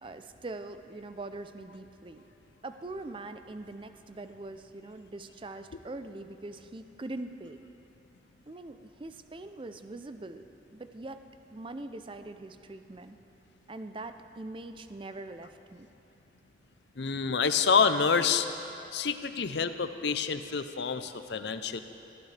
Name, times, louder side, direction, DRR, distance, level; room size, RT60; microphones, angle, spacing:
voice 1, 0.0-2.2 2.6-7.6 8.5-10.5 10.7-11.2 11.5-13.2 13.7-15.9, right 2 dB, 25° right, 9 dB, 0.4 m, -42 dB
voice 2, 17.0-18.5 18.9-21.8, left 5 dB, 65° left, 10 dB, 0.6 m, -27 dB
20.0 x 14.5 x 3.4 m, 2.9 s
head